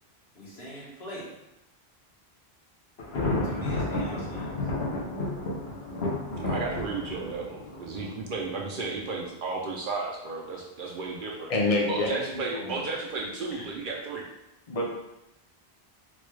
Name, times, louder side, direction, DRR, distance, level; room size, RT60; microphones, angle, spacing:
voice 1, 0.3-1.3 3.4-4.6, equal, 75° left, -7 dB, 1.5 m, -42 dB
Thunder, 3.0-8.8, left 2 dB, 90° left, 1.1 m, -32 dB
voice 2, 6.3-11.5 11.9-14.2, right 3 dB, 60° right, -1 dB, 0.7 m, -33 dB
voice 3, 11.5-12.9 14.7-14.9, left 2 dB, 40° left, -1 dB, 0.6 m, -28 dB
4.0 x 2.2 x 3.1 m, 0.88 s
omnidirectional pair, 1.1 m